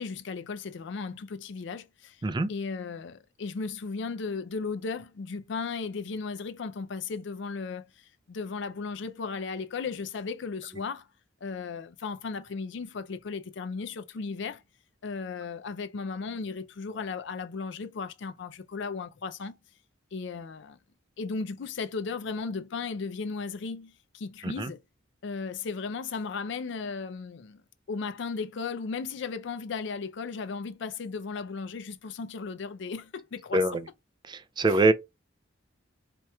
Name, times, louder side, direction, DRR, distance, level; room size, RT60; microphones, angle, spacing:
voice 1, 0.0-2.2 2.5-11.1 11.4-14.6 15.0-19.6 20.1-20.8 21.2-24.8 25.2-27.6 27.9-33.6 34.7-34.8, left 4 dB, 65° left, 0.4 m, -35 dB
voice 2, 34.3-34.9, right 2 dB, 25° right, 0.4 m, -24 dB
4.4 x 2.9 x 2.3 m
head